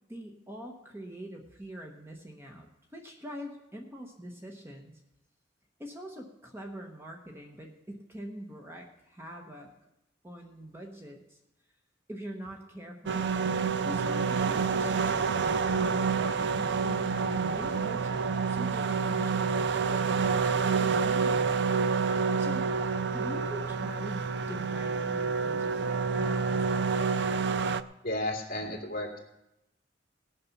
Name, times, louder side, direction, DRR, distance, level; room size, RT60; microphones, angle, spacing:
voice 1, 0.1-2.7 2.9-4.9 5.8-9.7 10.2-11.4 12.1-13.3 13.9-21.6 22.4-22.7 23.1-26.4, equal, 15° right, 1 dB, 1.1 m, -43 dB
sound 1, 13.1-27.8, right 5 dB, 65° right, 0.4 m, -28 dB
voice 2, 28.0-29.2, left 1 dB, 50° left, 0 dB, 2.7 m, -33 dB
18.0 x 6.9 x 5.9 m, 0.89 s
head